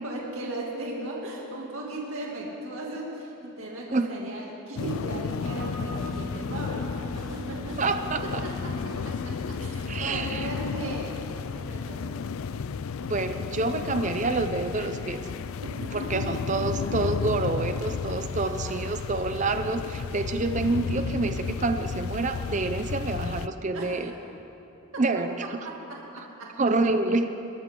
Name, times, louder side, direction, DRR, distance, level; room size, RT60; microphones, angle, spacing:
voice 1, 0.0-7.8 8.4-11.2 11.5-12.2 15.6-16.3 18.6-18.7 23.7-24.4 24.9-25.2 25.6-26.0 26.4-26.5, right 2 dB, 70° right, -3 dB, 2.5 m, -37 dB
sound 1, 4.8-23.5, left 5 dB, 70° left, 0.4 m, -33 dB
sound 2, 5.4-11.9, right 1 dB, 5° left, 4.0 m, -42 dB
voice 2, 7.8-8.4 9.9-10.5 13.1-15.2 15.9-24.1 25.0-25.3 26.6-27.3, right 3 dB, 35° right, 8 dB, 0.6 m, -27 dB
26.0 x 13.5 x 3.8 m, 2.9 s
head